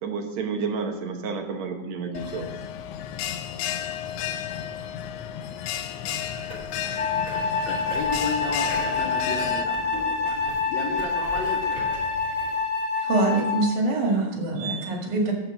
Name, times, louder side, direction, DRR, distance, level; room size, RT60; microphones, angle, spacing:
voice 1, 0.0-2.5, right 5 dB, 70° right, 4 dB, 2.2 m, -30 dB
Bell, 2.1-9.6, left 10 dB, 90° left, 2.0 m, -32 dB
sound 1, 6.1-12.6, right 1 dB, 30° right, 2.7 m, -41 dB
Wind instrument woodwind instrument, 7.0-13.7, left 4 dB, 20° left, 2.0 m, -27 dB
voice 2, 7.6-11.8, left 4 dB, 70° left, -1 dB, 2.3 m, -34 dB
voice 3, 13.0-15.3, right 2 dB, 90° right, 0 dB, 3.4 m, -24 dB
13.0 x 4.6 x 6.9 m, 1.1 s
omnidirectional pair, 3.4 m